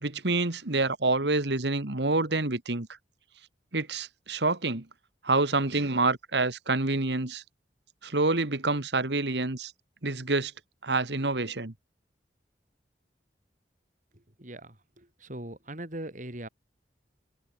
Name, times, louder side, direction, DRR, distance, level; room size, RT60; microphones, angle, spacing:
voice 1, 0.0-2.9 3.7-4.9 5.2-7.4 8.0-9.7 10.0-10.5 10.8-11.7, right 3 dB, 75° right, 2.0 m, -27 dB
voice 2, 14.1-16.5, right 1 dB, 45° right, 4.1 m, -41 dB
open air
head